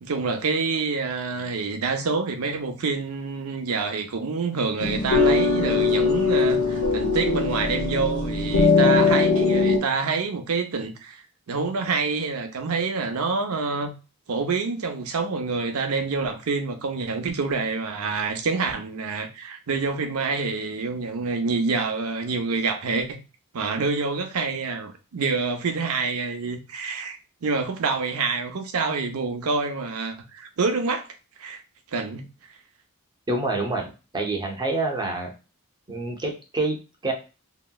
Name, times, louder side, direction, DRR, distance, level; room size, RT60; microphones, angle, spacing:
voice 1, 0.0-11.2 11.5-13.9 14.3-23.2 23.5-31.1 31.4-31.6 31.9-32.3, right 4 dB, 75° right, 0.6 m, -27 dB
sound 1, 4.8-9.8, left 4 dB, 80° left, 0.7 m, -21 dB
voice 2, 33.3-33.9 34.1-35.3 35.9-37.1, right 2 dB, 20° right, 0.7 m, -27 dB
3.1 x 2.8 x 2.2 m
head